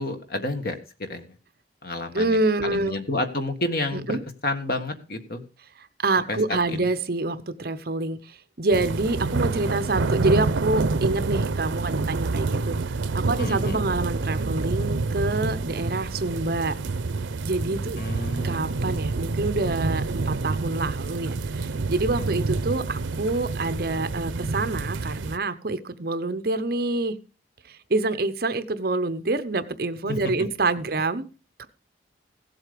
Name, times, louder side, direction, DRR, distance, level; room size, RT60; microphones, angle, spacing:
voice 1, 0.0-1.3 1.8-4.2 4.4-5.4 6.3-6.4 6.7-6.9 13.4-13.8 18.0-18.8 30.1-30.2, left 2 dB, 50° left, 7 dB, 1.6 m, -30 dB
voice 2, 2.1-3.0 3.9-4.2 6.0-16.8 17.4-18.0 18.4-27.2 27.7-31.3 31.6-31.7, right 2 dB, 50° right, 12 dB, 0.9 m, -27 dB
sound 1, 8.7-25.4, right 3 dB, 80° right, 0.6 m, -28 dB
16.0 x 8.0 x 5.1 m, 0.34 s
head